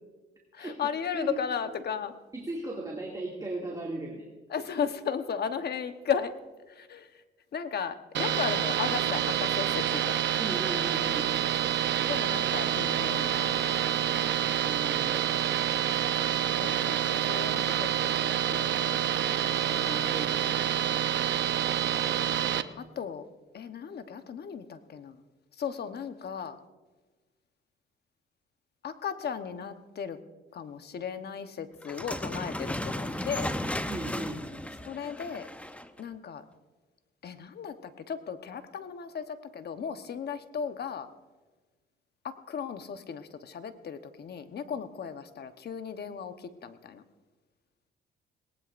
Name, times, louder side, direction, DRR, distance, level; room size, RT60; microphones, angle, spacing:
voice 1, 0.5-2.1 4.5-6.3 6.7-7.2 7.5-10.2 12.1-13.6 14.8-15.6 16.6-19.1 22.8-23.2 23.5-25.2 25.6-26.6 28.8-30.2 30.5-33.5 34.8-35.5 36.0-36.4 37.2-41.1 42.2-47.0, left 7 dB, 55° left, 9 dB, 1.1 m, -36 dB
voice 2, 2.3-4.3 10.4-11.3 14.6-15.1 19.7-20.8 33.9-34.4, right 2 dB, 20° right, -1 dB, 2.4 m, -37 dB
sound 1, 8.1-22.6, right 10 dB, 65° right, 0.7 m, -27 dB
sound 2, 31.8-36.0, left 1 dB, 5° left, 0.7 m, -35 dB
19.0 x 18.5 x 2.6 m, 1.3 s
cardioid pair, 90°, 20 cm